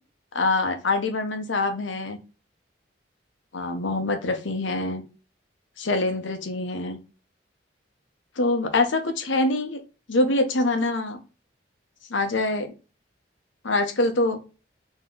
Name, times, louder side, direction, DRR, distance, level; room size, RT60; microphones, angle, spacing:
voice 1, 0.3-2.2 3.5-5.0 5.8-7.0 8.4-9.8 10.1-11.2 12.1-12.7 13.6-14.4, left 2 dB, 85° left, 7 dB, 0.9 m, -24 dB
3.9 x 3.1 x 3.7 m, 0.32 s
head